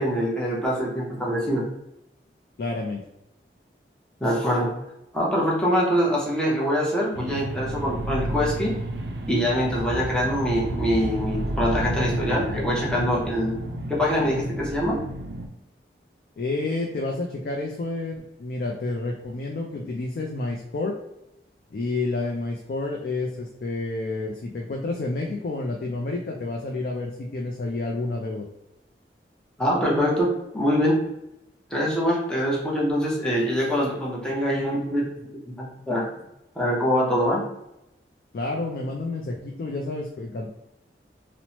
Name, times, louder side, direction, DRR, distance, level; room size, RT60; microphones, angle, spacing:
voice 1, 0.0-1.7 4.2-4.7 5.1-8.8 9.3-13.6 13.9-15.0 29.6-31.0 31.7-36.0 36.6-37.4, equal, 5° left, -5 dB, 0.6 m, -24 dB
voice 2, 2.6-3.0 16.4-20.9 21.7-28.4 38.3-40.5, left 2 dB, 55° left, 0 dB, 0.3 m, -29 dB
sound 1, 7.1-15.5, right 1 dB, 70° right, 0.4 m, -31 dB
2.9 x 2.0 x 2.8 m, 0.87 s
head